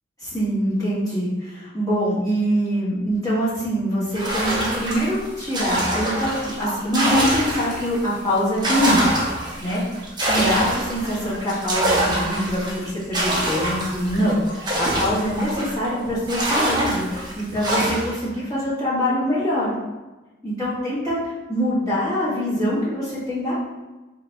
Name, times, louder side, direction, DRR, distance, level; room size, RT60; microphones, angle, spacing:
voice 1, 0.2-9.1 9.6-9.8 10.2-19.7 20.4-23.6, equal, 20° left, -10 dB, 1.5 m, -24 dB
sound 1, 4.1-8.0 8.4-15.9 16.3-18.2, right 1 dB, 20° right, 0.7 m, -25 dB
3.8 x 2.8 x 3.4 m, 1.1 s
head